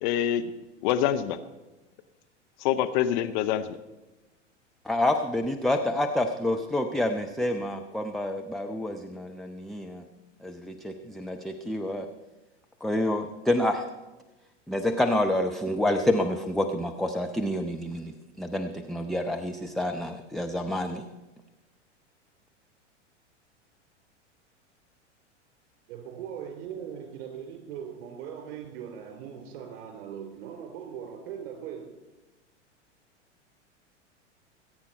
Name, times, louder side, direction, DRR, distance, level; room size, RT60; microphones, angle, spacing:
voice 1, 0.0-0.4 0.8-1.4 2.6-3.8, left 10 dB, 40° left, 9 dB, 0.8 m, -25 dB
voice 2, 4.9-10.0 10.4-12.1 12.8-13.9 14.7-21.0, left 1 dB, ahead, 3 dB, 0.4 m, -28 dB
voice 3, 25.9-31.9, right 8 dB, 45° right, 4 dB, 3.9 m, -40 dB
21.0 x 8.8 x 4.3 m, 1.1 s
figure-of-eight pair, 90°, 36 cm